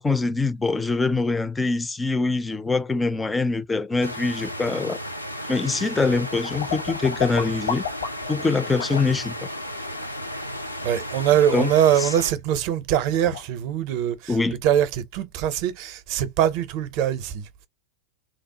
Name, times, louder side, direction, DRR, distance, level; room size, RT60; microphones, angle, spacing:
voice 1, 0.0-5.0 5.5-7.8 8.3-9.3 11.5-11.7 12.0-12.1 14.3-14.5, left 3 dB, 10° left, 0.3 m, -24 dB
sound 1, 4.0-12.3, equal, 90° left, 0.4 m, -34 dB
sound 2, 6.2-8.4 8.8-9.1 12.6-12.7 13.0-13.5, left 7 dB, 65° left, 0.8 m, -31 dB
voice 2, 10.8-17.7, right 10 dB, 45° right, 0.5 m, -23 dB
3.0 x 2.1 x 2.7 m
figure-of-eight pair, 90°, 0 cm